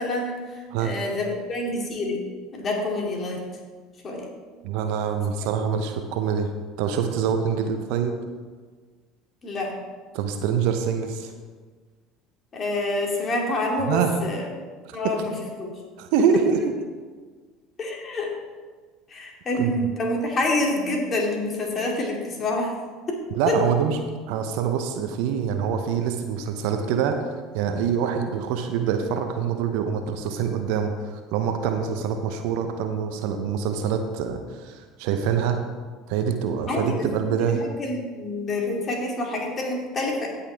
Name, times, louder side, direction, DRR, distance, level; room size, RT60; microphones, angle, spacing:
voice 1, 0.0-2.2 2.5-3.4 4.0-4.3 9.4-9.8 12.5-14.5 14.9-15.7 17.8-18.3 19.1-22.7 23.1-23.2 23.5-23.6 36.6-37.1 37.4-40.3, left 2 dB, 35° left, -1 dB, 2.6 m, -27 dB
voice 2, 4.6-6.5 6.8-8.1 10.1-11.3 13.9-14.2 14.9-15.4 16.0-16.6 19.6-19.7 23.3-24.0 24.3-35.6 36.1-37.6, right 7 dB, 65° right, 6 dB, 0.8 m, -25 dB
17.0 x 5.8 x 3.4 m, 1.5 s
hypercardioid pair, 65°, 0 cm